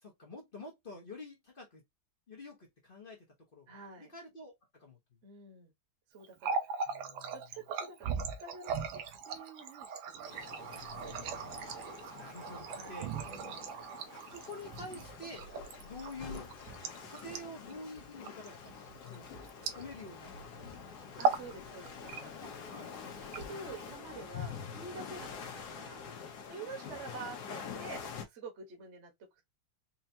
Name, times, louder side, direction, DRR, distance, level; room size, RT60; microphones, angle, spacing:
voice 1, 0.0-1.8 2.3-3.2 3.5-5.0 6.9-7.4 11.4-11.8 12.1-13.1 14.3-15.5 15.8-16.5 17.1-19.3 19.7-21.2 21.6-21.7 22.4-23.3, left 2 dB, 40° left, 0.7 m, -48 dB
voice 2, 3.7-4.1 5.2-5.7 6.1-6.6 7.3-8.7 9.1-11.5 12.7-13.7 21.2-22.4 23.3-25.3 25.6-26.1 26.5-29.1, right 4 dB, 40° right, 1.2 m, -48 dB
Water tap faucet, 6.2-20.3 20.5-20.8 21.1-21.5 21.9-22.5 23.2-23.9, right 5 dB, 70° right, 1.4 m, -38 dB
sound 1, 10.2-28.2, left 6 dB, 60° left, 1.2 m, -46 dB
4.5 x 2.8 x 2.7 m
omnidirectional pair, 2.3 m